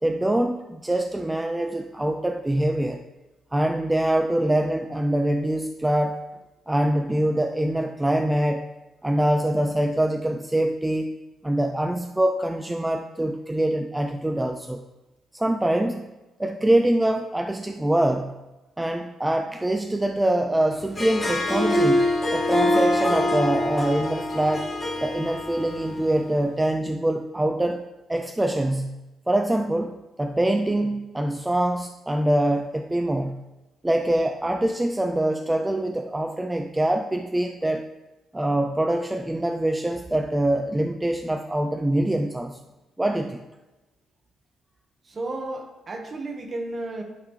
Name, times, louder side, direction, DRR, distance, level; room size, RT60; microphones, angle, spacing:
voice 1, 0.0-3.0 3.5-6.2 6.7-8.7 9.0-14.8 15.3-16.1 16.4-18.3 18.8-24.7 25.0-29.0 29.3-33.4 33.8-37.9 38.3-42.6 43.0-43.4, right 1 dB, 10° right, 5 dB, 0.3 m, -24 dB
Harp, 20.8-26.3, left 1 dB, 25° left, 2.2 m, -24 dB
voice 2, 45.0-47.0, right 2 dB, 40° right, 3 dB, 1.2 m, -33 dB
11.0 x 3.8 x 3.1 m, 1.1 s
cardioid pair, 90°, 0 cm